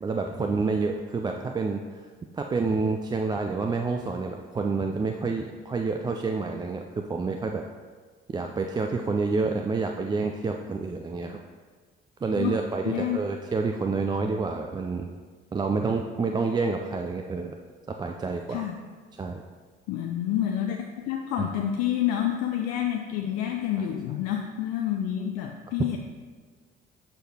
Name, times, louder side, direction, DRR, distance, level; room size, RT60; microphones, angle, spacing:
voice 1, 0.0-1.8 2.3-7.6 8.3-11.4 12.2-15.1 15.5-17.5 18.0-18.6 19.2-19.4 21.4-21.5, right 4 dB, 15° right, 3 dB, 0.3 m, -28 dB
voice 2, 12.9-13.2 18.5-18.8 19.9-26.0, left 11 dB, 55° left, 3 dB, 0.5 m, -28 dB
6.3 x 6.3 x 2.8 m, 1.5 s
figure-of-eight pair, 45°, 31 cm